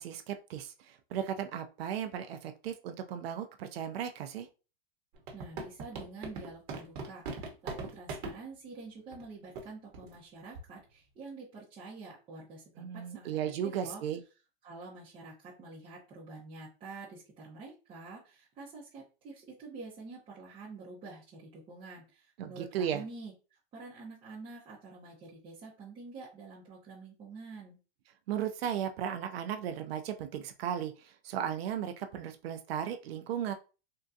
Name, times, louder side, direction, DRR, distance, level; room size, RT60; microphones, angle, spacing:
voice 1, 0.0-4.5 12.8-14.2 22.4-23.0 28.3-33.5, right 9 dB, 80° right, 6 dB, 0.5 m, -36 dB
sound 1, 5.1-8.4 9.1-9.2 9.6-9.7 9.9-10.2 10.6-10.8, right 3 dB, 55° right, 1.0 m, -39 dB
voice 2, 5.3-14.0 14.6-27.8, right 3 dB, 20° right, -7 dB, 0.7 m, -48 dB
3.6 x 2.2 x 2.6 m, 0.33 s
supercardioid pair, 155°, 30 cm